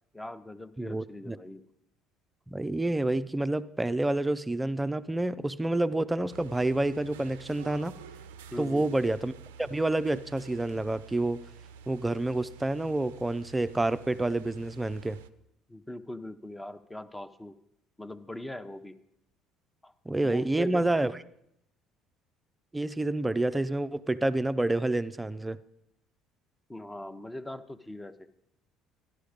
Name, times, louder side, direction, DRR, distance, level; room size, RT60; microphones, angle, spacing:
voice 1, 0.1-1.6 8.5-8.8 15.7-17.6 18.0-19.0 19.8-19.9 20.2-20.9 26.7-28.3, left 1 dB, 10° left, 11 dB, 0.8 m, -40 dB
voice 2, 0.8-1.4 2.5-8.0 8.6-9.3 9.6-11.4 11.9-15.2 20.1-21.1 22.7-25.6, right 2 dB, 15° right, 13 dB, 0.5 m, -28 dB
sound 1, 6.3-15.3, right 7 dB, 80° right, 0.5 m, -49 dB
13.0 x 11.5 x 5.1 m, 0.77 s
hypercardioid pair, 60°, 0 cm